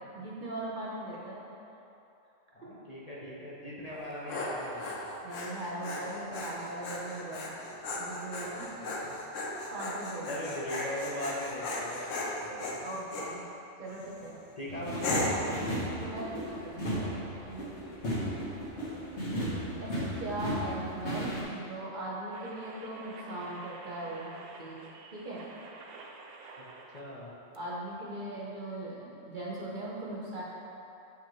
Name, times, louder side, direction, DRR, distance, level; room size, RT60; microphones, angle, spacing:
voice 1, 0.0-1.5 5.2-7.6 8.0-9.0 9.7-10.4 12.8-13.4 13.8-14.4 16.0-17.2 17.4-17.7 19.8-24.8 25.1-25.5 27.5-30.4, right 1 dB, 45° right, -5 dB, 0.9 m, -39 dB
voice 2, 2.5-5.0 9.0-9.2 10.3-12.7 14.6-15.8 26.6-26.7 26.9-27.3, equal, 35° left, -7 dB, 0.9 m, -39 dB
Dog, 3.9-13.3 13.9-14.3 15.0-15.5, left 2 dB, 85° left, 1.1 m, -37 dB
sound 1, 14.7-21.4, equal, 65° left, 1.6 m, -35 dB
sound 2, 22.3-27.3 27.5-27.6, right 4 dB, 80° right, 0.9 m, -49 dB
6.9 x 5.6 x 3.1 m, 2.8 s
omnidirectional pair, 1.3 m